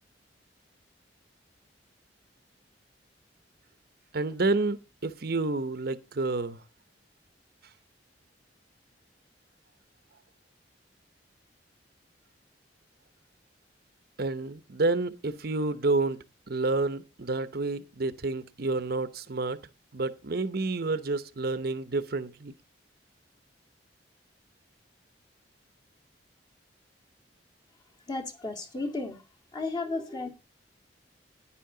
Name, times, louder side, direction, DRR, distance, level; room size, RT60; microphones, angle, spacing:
voice 1, 4.1-4.8 5.0-6.6 14.2-19.6 19.9-22.5, right 3 dB, 55° right, 0.8 m, -29 dB
voice 2, 28.1-29.2 29.5-30.3, left 3 dB, 25° left, 2.1 m, -33 dB
10.5 x 10.0 x 3.8 m
head